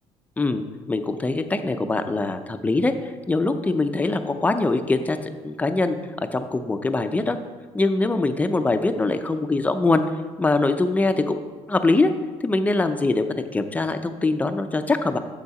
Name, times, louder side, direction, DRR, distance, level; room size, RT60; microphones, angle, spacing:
voice 1, 0.4-2.9 3.3-5.2 5.4-7.4 7.7-10.0 10.4-11.4 11.7-12.1 12.4-13.2 13.5-15.2, left 3 dB, 15° left, 8 dB, 0.5 m, -23 dB
7.2 x 6.9 x 4.8 m, 1.4 s
cardioid pair, 120°, 12 cm